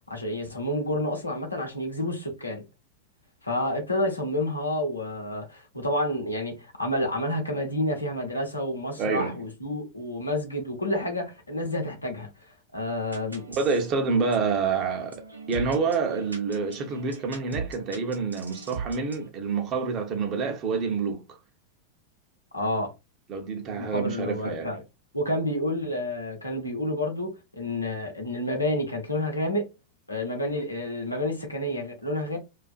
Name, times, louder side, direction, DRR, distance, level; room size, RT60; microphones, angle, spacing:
voice 1, 0.1-2.6 3.4-13.4 22.5-22.9 23.8-24.8 25.1-29.7 30.1-32.4, left 1 dB, 85° left, 0.7 m, -29 dB
voice 2, 9.0-9.3 13.6-15.2 15.5-21.4 23.3-24.7, right 5 dB, 35° right, 0.6 m, -27 dB
sound 1, 13.1-19.3, right 5 dB, 80° right, 0.5 m, -41 dB
2.4 x 2.4 x 2.3 m
figure-of-eight pair, 90°, 0 cm